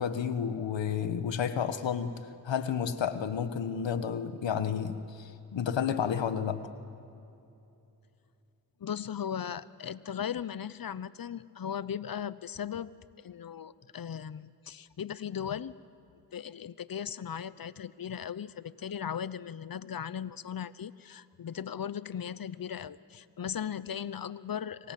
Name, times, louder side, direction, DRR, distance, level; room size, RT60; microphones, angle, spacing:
voice 1, 0.0-2.1 2.4-6.7, left 7 dB, 85° left, 10 dB, 1.4 m, -31 dB
voice 2, 8.8-15.7 16.3-24.9, left 8 dB, 50° left, 17 dB, 0.9 m, -37 dB
26.5 x 23.0 x 7.7 m, 2.8 s
cardioid pair, 55°, 43 cm